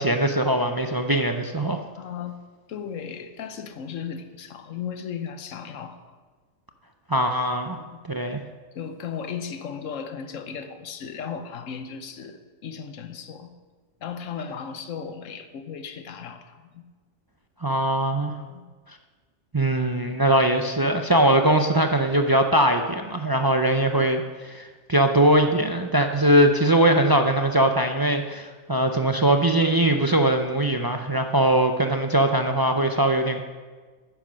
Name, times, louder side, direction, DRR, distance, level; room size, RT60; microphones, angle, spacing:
voice 1, 0.0-1.8 7.1-7.8 8.1-8.4 17.6-18.3 19.5-33.4, right 1 dB, 35° right, 5 dB, 0.4 m, -21 dB
voice 2, 2.0-2.3 2.7-6.1 7.8-7.9 8.7-13.5 14.0-16.8 18.5-18.6, left 7 dB, 85° left, 9 dB, 1.2 m, -36 dB
9.9 x 9.2 x 6.3 m, 1.4 s
omnidirectional pair, 1.3 m